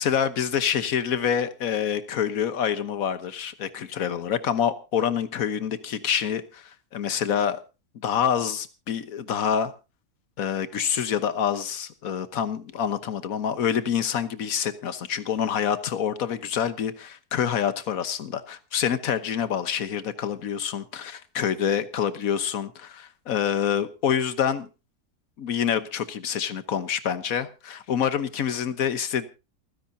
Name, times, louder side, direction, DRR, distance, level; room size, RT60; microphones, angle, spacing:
voice 1, 0.0-7.6 7.9-9.7 10.4-24.7 25.4-29.3, left 8 dB, 65° left, 13 dB, 1.5 m, -27 dB
28.0 x 10.5 x 2.7 m, 0.30 s
omnidirectional pair, 1.6 m